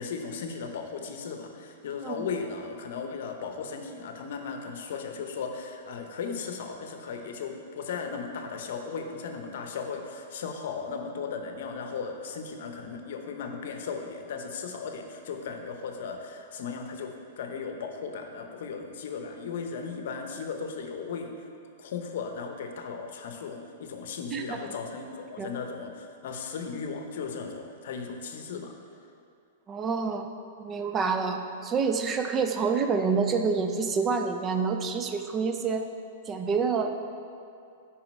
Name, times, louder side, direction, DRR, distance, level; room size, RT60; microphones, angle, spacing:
voice 1, 0.0-21.3 21.8-28.8, left 5 dB, 65° left, 5 dB, 0.7 m, -36 dB
voice 2, 24.3-24.7 25.4-25.5 29.7-30.3 30.6-35.9 36.3-37.0, right 5 dB, 25° right, 6 dB, 0.5 m, -27 dB
5.8 x 4.9 x 5.3 m, 2.5 s
hypercardioid pair, 130°, 0 cm